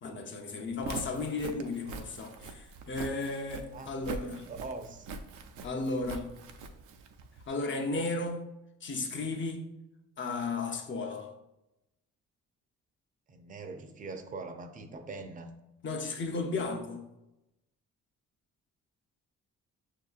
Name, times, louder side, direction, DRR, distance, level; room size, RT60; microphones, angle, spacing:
voice 1, 0.0-4.5 5.6-6.3 7.5-8.4 8.8-9.6 10.2-11.3 15.8-17.1, left 3 dB, 40° left, 0.7 m, -34 dB
Walk footsteps, 0.7-7.5, right 4 dB, 85° right, 0.5 m, -44 dB
voice 2, 4.5-5.1 13.3-15.5, right 3 dB, 25° right, 0.5 m, -42 dB
6.1 x 2.8 x 2.4 m
cardioid pair, 90°, 30 cm